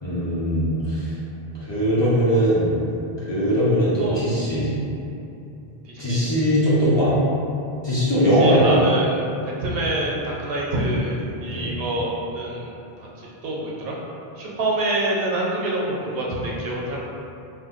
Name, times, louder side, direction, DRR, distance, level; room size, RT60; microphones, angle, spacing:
voice 1, 0.0-1.1 1.7-2.7 3.2-4.7 6.0-7.1 7.8-8.8 11.5-11.7, equal, 30° left, -12 dB, 0.7 m, -20 dB
voice 2, 5.8-6.2 8.3-12.7 13.0-14.0 14.4-17.0, right 1 dB, 75° right, -4 dB, 0.8 m, -26 dB
2.5 x 2.2 x 3.6 m, 2.7 s
omnidirectional pair, 1.0 m